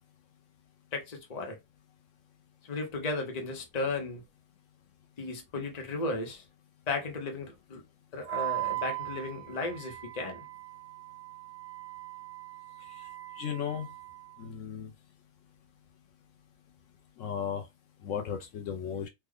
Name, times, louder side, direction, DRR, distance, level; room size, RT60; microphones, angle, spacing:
voice 1, 0.9-1.6 2.6-4.2 5.2-6.4 6.9-7.8 8.1-10.4, left 3 dB, 35° left, 0.9 m, -35 dB
Wind instrument woodwind instrument, 8.3-14.4, right 22 dB, 75° right, 1.0 m, -39 dB
voice 2, 13.4-13.9 14.4-14.9 17.2-17.6 18.0-19.1, left 8 dB, 75° left, 1.0 m, -35 dB
3.3 x 2.2 x 3.6 m
omnidirectional pair, 1.4 m